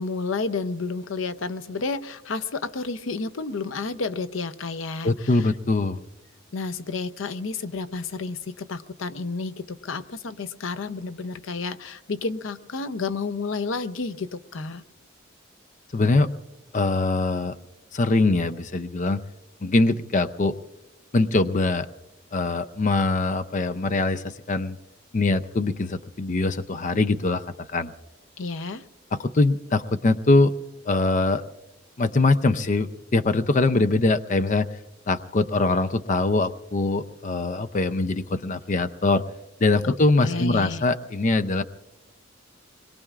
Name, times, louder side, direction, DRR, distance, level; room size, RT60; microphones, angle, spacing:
voice 1, 0.0-5.5 6.5-14.8 28.4-28.8 39.8-40.8, left 4 dB, 85° left, 11 dB, 0.6 m, -31 dB
voice 2, 5.0-6.0 15.9-16.3 16.7-17.6 17.9-19.2 19.6-20.6 21.1-21.9 22.3-24.8 25.1-27.4 27.7-27.9 29.1-30.5 30.9-31.4 32.0-34.7 35.1-39.2 39.6-41.6, left 3 dB, 40° left, 11 dB, 0.5 m, -22 dB
26.5 x 21.5 x 2.4 m, 0.99 s
head